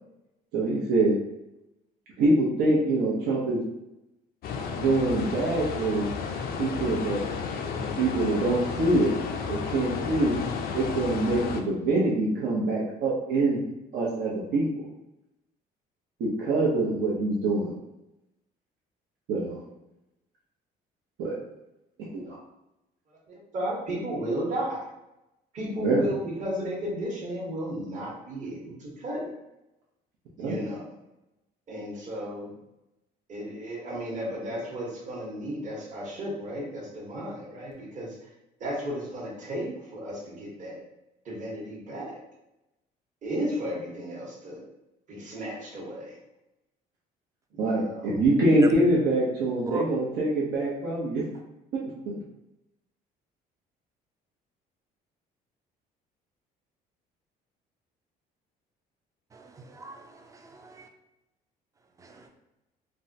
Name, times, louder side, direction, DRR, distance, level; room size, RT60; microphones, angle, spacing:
voice 1, 0.5-1.2 2.2-3.6 4.5-6.1 6.6-7.2 7.7-9.1 9.5-10.3 10.7-13.6 13.9-14.9 16.2-17.7 19.3-19.6 21.2-21.4 22.0-22.4 25.8-26.1 30.4-30.6 47.6-51.2 51.7-51.8 52.1-52.2, right 2 dB, 80° right, -5 dB, 0.7 m, -25 dB
sound 1, 4.4-11.6, left 5 dB, 60° left, 0.4 m, -32 dB
voice 2, 23.5-24.8 25.5-29.3 30.4-30.8 31.7-32.5 33.3-38.1 38.6-40.8 41.2-42.1 43.2-44.6 45.1-46.1 47.5-48.1, equal, 45° right, -5 dB, 1.0 m, -34 dB
voice 3, 59.3-60.9 62.0-62.3, right 4 dB, 20° right, 5 dB, 0.4 m, -36 dB
3.5 x 2.1 x 2.6 m, 0.92 s
cardioid pair, 110°, 17 cm